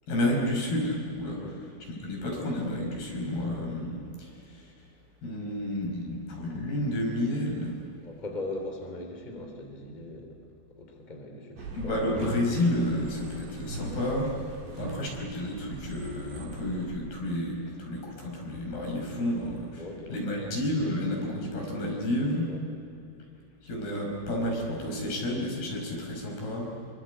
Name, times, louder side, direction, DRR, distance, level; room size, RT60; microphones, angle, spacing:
voice 1, 0.1-1.4 1.9-4.7 5.2-7.8 11.7-14.3 14.8-19.8 20.1-22.5 23.6-26.7, left 1 dB, 65° left, 0 dB, 7.2 m, -30 dB
voice 2, 8.0-10.4 10.8-12.1 14.6-14.8 19.7-20.6 22.2-22.6, left 2 dB, 10° left, 3 dB, 3.1 m, -40 dB
sound 1, 11.6-16.9, right 3 dB, 75° right, 5.5 m, -40 dB
27.0 x 25.0 x 8.1 m, 2.7 s
omnidirectional pair, 4.9 m